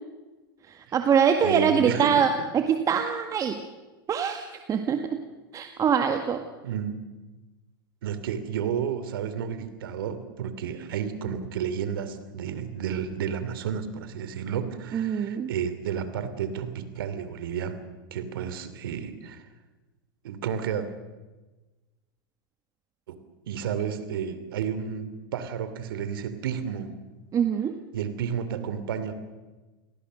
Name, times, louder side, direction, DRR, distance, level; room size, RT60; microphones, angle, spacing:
voice 1, 0.7-3.6 4.1-5.2 5.5-6.4 14.9-15.5 27.3-27.7, right 7 dB, 30° right, 6 dB, 1.9 m, -24 dB
voice 2, 1.4-2.2 6.6-7.0 8.0-17.8 18.1-19.4 20.2-20.9 23.1-23.2 23.5-25.1 25.3-26.9 27.9-29.1, right 8 dB, 75° right, 11 dB, 2.9 m, -31 dB
29.5 x 18.5 x 6.5 m, 1.2 s
hypercardioid pair, 105°, 12 cm